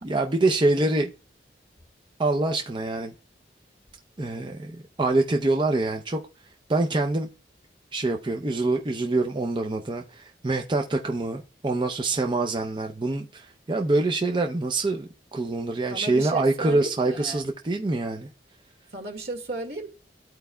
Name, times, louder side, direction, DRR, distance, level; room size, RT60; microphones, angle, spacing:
voice 1, 0.0-1.1 2.2-3.1 4.2-6.2 6.7-7.3 7.9-18.3, right 2 dB, 25° right, 0.5 m, -25 dB
voice 2, 15.9-17.4 18.9-19.9, right 2 dB, 60° right, 1.9 m, -34 dB
13.5 x 4.6 x 2.2 m
head